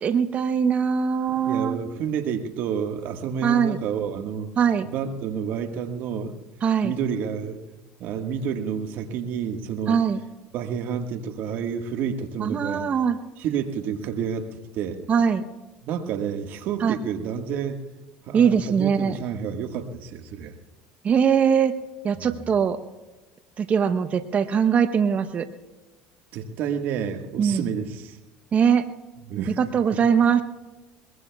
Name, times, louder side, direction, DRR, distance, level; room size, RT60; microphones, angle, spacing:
voice 1, 0.0-1.8 3.4-3.8 4.6-4.9 6.6-6.9 9.9-10.2 12.4-13.2 15.1-15.4 16.8-17.0 18.3-19.2 21.0-21.7 22.0-22.8 23.6-25.5 27.4-27.7 28.5-28.9 29.6-30.4, right 7 dB, 40° right, 10 dB, 0.9 m, -21 dB
voice 2, 1.3-4.5 4.9-6.4 6.8-7.6 8.0-10.0 10.5-12.9 13.4-14.5 14.7-15.0 15.8-17.8 18.3-20.5 22.2-22.5 26.3-28.2 29.3-29.6, right 7 dB, 60° right, 6 dB, 1.6 m, -29 dB
22.5 x 21.5 x 2.4 m, 1.2 s
hypercardioid pair, 80°, 4 cm